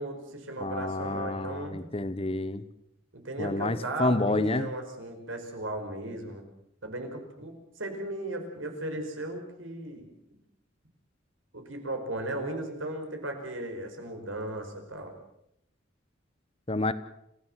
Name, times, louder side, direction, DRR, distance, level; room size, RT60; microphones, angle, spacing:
voice 1, 0.0-1.8 3.1-6.4 6.8-10.1 11.5-15.1, right 1 dB, 85° right, 4 dB, 5.5 m, -36 dB
voice 2, 0.6-2.6 3.4-4.7 16.7-16.9, left 2 dB, 30° left, 13 dB, 1.1 m, -29 dB
28.0 x 16.0 x 7.6 m, 0.78 s
head